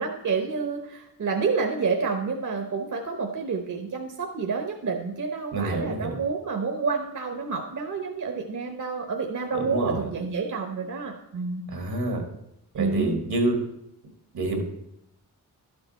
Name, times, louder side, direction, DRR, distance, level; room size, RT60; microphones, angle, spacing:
voice 1, 0.0-11.7 12.8-13.2, right 4 dB, 55° right, 3 dB, 1.0 m, -29 dB
voice 2, 5.5-6.2 9.5-10.0 11.7-12.2 12.7-13.6 14.3-14.6, right 2 dB, 80° right, 3 dB, 1.9 m, -27 dB
11.5 x 6.8 x 4.1 m, 0.81 s
cardioid pair, 75°, 37 cm